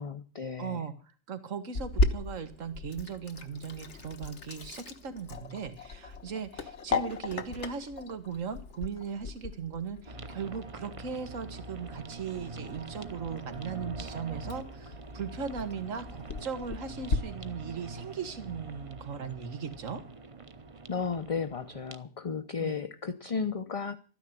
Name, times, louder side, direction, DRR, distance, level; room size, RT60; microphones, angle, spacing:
voice 1, 0.0-0.8 20.9-24.0, left 5 dB, 30° left, 8 dB, 0.7 m, -34 dB
voice 2, 0.6-20.0 22.6-22.8, right 6 dB, 80° right, 11 dB, 1.9 m, -38 dB
Sink (filling or washing), 1.7-17.2, left 3 dB, 65° left, 1.5 m, -37 dB
sound 1, 10.0-22.0, right 2 dB, 30° right, 1.0 m, -44 dB
13.5 x 10.0 x 9.1 m, 0.40 s
omnidirectional pair, 1.3 m